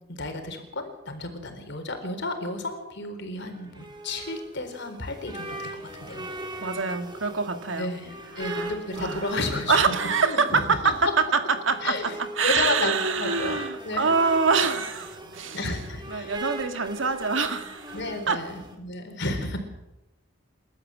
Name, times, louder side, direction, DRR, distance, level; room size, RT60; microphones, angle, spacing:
voice 1, 0.1-6.3 7.8-10.0 10.2-10.9 11.8-13.6 13.8-14.1 15.5-16.4 17.9-19.6, left 2 dB, 55° left, 5 dB, 4.2 m, -32 dB
sound 1, 3.4-18.7, right 1 dB, 20° right, 3.0 m, -39 dB
voice 2, 6.6-7.9 8.4-9.3 9.7-15.6 16.1-17.9 18.3-18.4, right 5 dB, 60° right, 7 dB, 2.1 m, -25 dB
29.0 x 13.0 x 7.7 m, 0.97 s
head